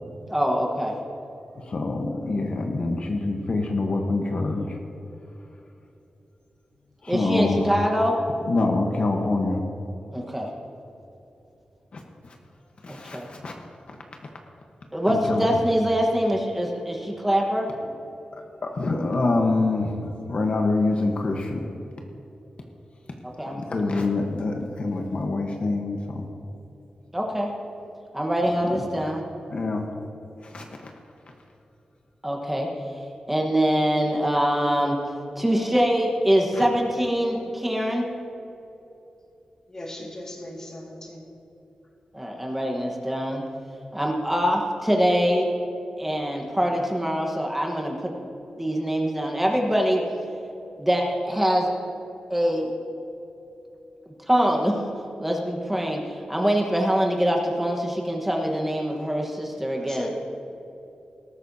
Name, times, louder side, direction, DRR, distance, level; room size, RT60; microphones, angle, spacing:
voice 1, 0.3-0.9 7.1-8.1 10.1-10.5 12.9-13.3 14.9-17.7 23.4-23.6 27.1-27.5 28.1-29.2 32.2-32.7 33.3-35.0 35.4-38.1 42.1-43.4 43.9-45.5 46.0-48.1 48.6-50.0 50.8-51.7 52.3-52.7 54.3-54.8 55.2-60.1, equal, 10° right, 0 dB, 1.3 m, -24 dB
voice 2, 1.6-4.8 7.0-7.7 8.4-9.6 11.9-12.4 12.8-13.5 13.9-14.0 15.1-15.6 18.3-21.7 23.5-26.2 28.6-28.9 29.5-29.8 30.4-30.9 36.5-36.6, left 3 dB, 50° left, 2 dB, 1.1 m, -26 dB
voice 3, 39.7-41.3 59.8-60.1, left 1 dB, 25° left, -1 dB, 2.0 m, -38 dB
19.0 x 13.5 x 2.8 m, 3.0 s
wide cardioid pair, 135°, 2 cm